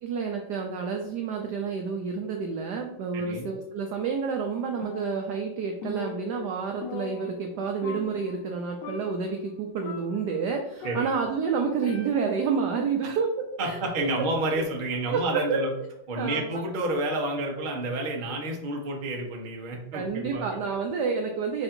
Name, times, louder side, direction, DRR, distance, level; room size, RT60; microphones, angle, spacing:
voice 1, 0.0-14.3 14.5-14.6 15.1-15.6 16.2-16.6 19.9-21.6, right 5 dB, 80° right, 3 dB, 0.9 m, -29 dB
voice 2, 3.1-3.5 10.8-11.1 13.0-13.2 13.6-15.7 16.1-20.6, right 2 dB, 50° right, -1 dB, 0.5 m, -30 dB
Percussion, 4.8-5.5 5.8-7.6 7.8-8.5 8.8-9.3 9.8-11.4 11.8-12.5, left 4 dB, 75° left, 1.0 m, -41 dB
4.8 x 2.6 x 4.3 m, 0.90 s
omnidirectional pair, 2.4 m